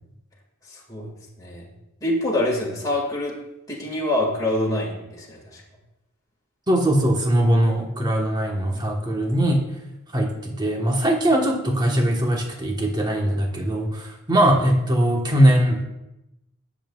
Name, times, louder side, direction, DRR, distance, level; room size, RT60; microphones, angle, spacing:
voice 1, 0.7-1.1 1.4-1.7 2.0-3.4 3.7-5.6 8.7-8.8, left 1 dB, 15° left, -4 dB, 2.0 m, -25 dB
voice 2, 6.7-9.7 10.1-15.8, right 1 dB, 20° right, 0 dB, 1.2 m, -21 dB
19.0 x 7.3 x 2.4 m, 0.92 s
head